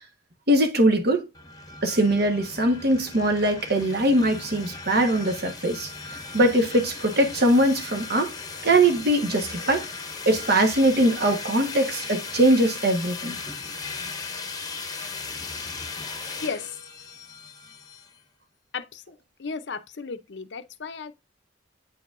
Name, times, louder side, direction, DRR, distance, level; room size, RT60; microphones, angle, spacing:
voice 1, 0.5-1.3 1.8-5.9 6.3-8.3 8.6-9.8 10.3-13.4, right 1 dB, 60° right, 1.2 m, -21 dB
sound 1, 1.3-18.1, left 4 dB, 20° left, 0.9 m, -37 dB
voice 2, 18.7-19.1 19.4-21.1, left 5 dB, 70° left, 0.6 m, -34 dB
8.5 x 4.6 x 2.5 m
head